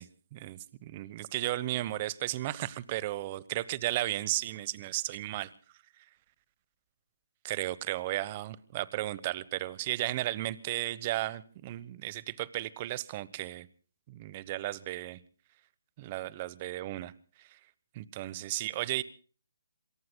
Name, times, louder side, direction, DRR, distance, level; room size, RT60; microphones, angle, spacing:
voice 1, 0.0-5.5 7.4-13.7 14.1-15.2 16.0-17.1 17.9-19.0, right 15 dB, 30° right, 19 dB, 1.0 m, -34 dB
27.5 x 23.0 x 2.2 m, 0.38 s
figure-of-eight pair, 150°, 0 cm